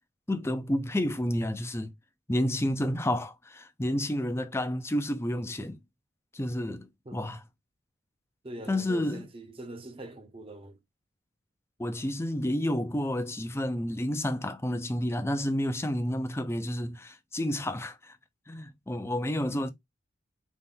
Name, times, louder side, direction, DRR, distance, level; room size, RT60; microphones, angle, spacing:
voice 1, 0.3-1.9 2.3-5.8 6.3-7.4 8.7-9.2 11.8-18.2 18.5-19.7, left 1 dB, 15° left, 0.5 m, -30 dB
voice 2, 8.4-10.8, right 1 dB, 25° right, 0.8 m, -43 dB
4.1 x 2.6 x 3.6 m
head